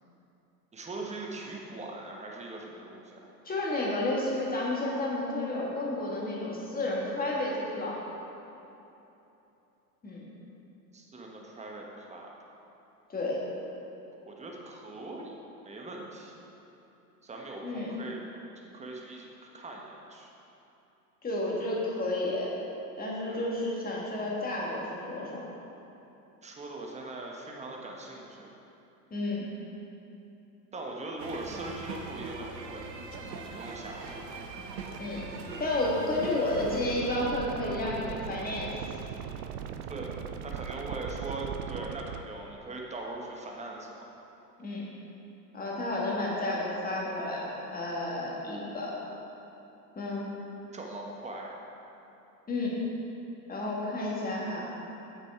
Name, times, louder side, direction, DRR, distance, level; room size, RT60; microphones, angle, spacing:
voice 1, 0.7-3.3 10.9-12.3 14.3-15.3 15.6-16.3 17.2-18.2 18.7-19.3 19.5-20.3 23.3-23.5 26.4-28.5 30.7-32.8 33.4-34.2 39.9-40.1 40.4-44.0 50.7-51.6, right 2 dB, 15° right, -1 dB, 1.2 m, -41 dB
voice 2, 3.5-8.0 10.0-10.3 13.1-13.4 17.6-17.9 21.2-22.5 23.0-25.4 29.1-29.5 35.0-35.2 35.6-39.0 44.6-44.9 45.5-48.9 50.0-50.3 52.5-52.7 53.5-54.7, left 1 dB, 20° left, -4 dB, 2.0 m, -31 dB
sound 1, 31.2-36.8, right 4 dB, 85° right, 0.9 m, -41 dB
sound 2, 36.5-42.2, right 8 dB, 65° right, 0.6 m, -39 dB
8.2 x 7.7 x 3.7 m, 2.9 s
hypercardioid pair, 90°, 49 cm